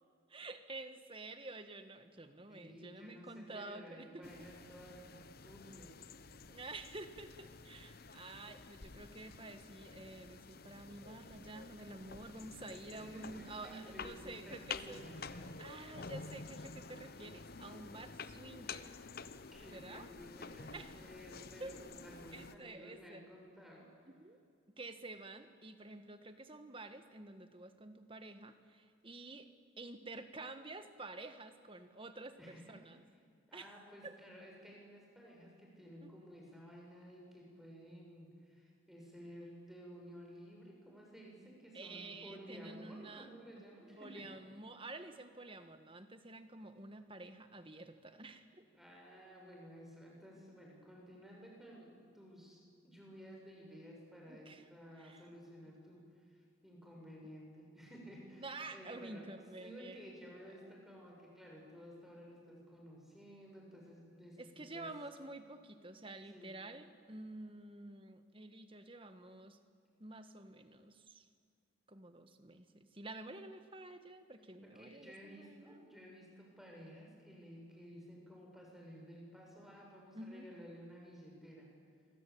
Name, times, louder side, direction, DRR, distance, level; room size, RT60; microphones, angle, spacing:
voice 1, 0.3-4.3 6.5-15.0 15.6-18.9 19.7-20.2 20.7-20.9 21.6-21.7 22.3-23.2 24.0-24.4 24.8-29.5 29.8-32.4 32.7-33.0 33.5-33.7 34.0-34.1 36.0-36.3 41.7-43.3 43.9-48.7 54.2-54.6 55.0-55.2 58.4-60.0 64.4-69.6 70.0-71.2 71.9-75.9 80.1-80.5, right 2 dB, 25° right, 9 dB, 1.6 m, -50 dB
voice 2, 2.5-5.0 5.4-6.0 12.9-15.5 19.4-23.9 32.4-32.7 33.5-44.4 48.7-59.3 59.6-64.9 66.3-66.5 74.6-81.7, equal, ahead, -1 dB, 6.9 m, -54 dB
sound 1, 4.2-22.6, left 4 dB, 45° left, 0.9 m, -50 dB
28.0 x 24.0 x 8.8 m, 2.3 s
head